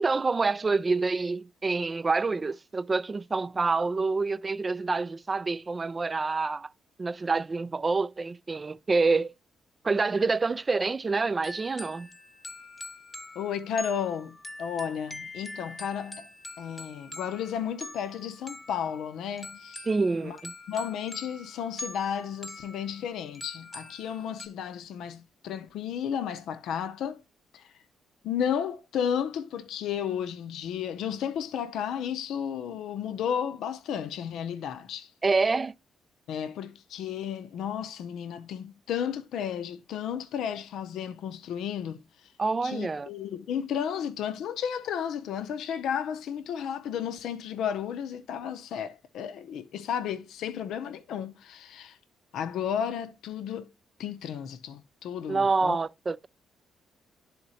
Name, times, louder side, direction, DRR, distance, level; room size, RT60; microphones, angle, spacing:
voice 1, 0.0-6.7 7.0-9.3 9.8-12.1 19.9-20.5 35.2-35.7 42.4-43.1 55.3-56.3, right 4 dB, 30° right, 0.3 m, -27 dB
sound 1, 11.4-24.5, left 2 dB, 15° left, 1.1 m, -44 dB
voice 2, 13.4-16.3 16.6-19.9 20.2-20.4 20.7-27.2 27.5-27.7 28.2-35.1 36.3-42.3 42.6-52.0 52.3-53.7 54.0-55.8, left 8 dB, 80° left, 0.6 m, -33 dB
11.0 x 3.9 x 2.7 m
cardioid pair, 90°, 0 cm